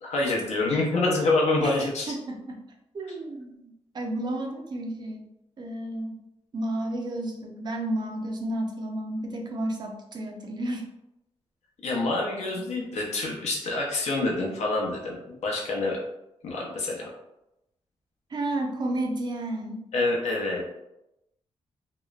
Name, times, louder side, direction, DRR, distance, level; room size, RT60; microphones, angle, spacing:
voice 1, 0.0-2.1 11.8-15.2 15.4-16.0 16.4-17.1 19.9-20.6, left 2 dB, 85° left, -2 dB, 0.7 m, -26 dB
voice 2, 2.1-2.6 2.9-5.2 5.6-6.2 6.5-10.9 18.3-19.8, right 1 dB, 40° right, 2 dB, 0.4 m, -32 dB
2.9 x 2.0 x 2.3 m, 0.87 s
wide cardioid pair, 140°, 11 cm